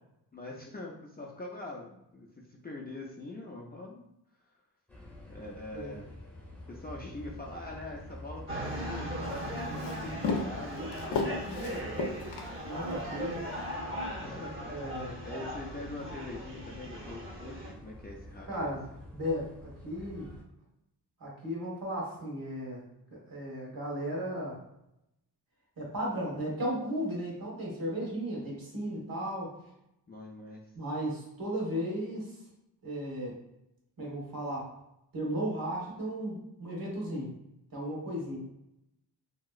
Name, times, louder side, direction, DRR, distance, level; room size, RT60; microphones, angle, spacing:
voice 1, 0.3-4.0 5.3-6.2 6.7-11.9 14.2-18.7 30.1-30.7, left 2 dB, 25° left, -3 dB, 0.4 m, -43 dB
sound 1, 4.9-20.4, left 1 dB, 5° left, 0.7 m, -47 dB
sound 2, 8.5-17.7, right 1 dB, 30° right, 0.8 m, -38 dB
Walk footsteps, 8.6-13.0, left 4 dB, 75° left, 0.5 m, -36 dB
voice 2, 12.6-13.4 14.7-15.2 18.5-18.8 19.1-20.3 21.2-22.8 23.1-24.6 25.8-29.5 30.7-32.3 32.8-33.4 34.0-34.7 35.1-37.3 37.7-38.4, equal, 55° right, -3 dB, 1.3 m, -35 dB
2.9 x 2.8 x 2.3 m, 0.81 s
wide cardioid pair, 110°, 41 cm